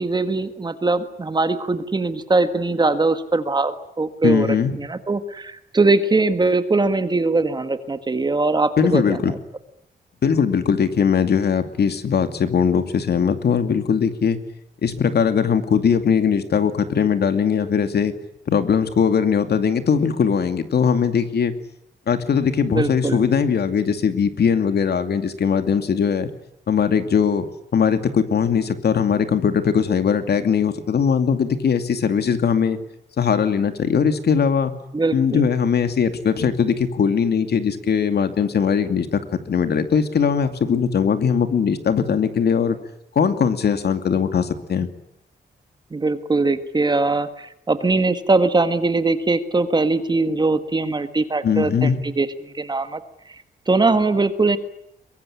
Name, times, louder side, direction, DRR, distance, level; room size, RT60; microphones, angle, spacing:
voice 1, 0.0-9.2 22.7-23.2 34.9-35.4 45.9-53.0 53.7-54.6, right 3 dB, 25° right, 10 dB, 1.7 m, -21 dB
voice 2, 4.2-4.8 8.8-9.3 10.2-14.4 14.8-18.1 18.5-21.5 22.1-26.3 26.7-27.5 27.7-32.8 33.2-34.7 35.1-42.8 43.1-44.9 51.4-52.0, left 6 dB, 65° left, 9 dB, 2.5 m, -20 dB
23.0 x 22.5 x 9.9 m, 0.77 s
wide cardioid pair, 170°, 18 cm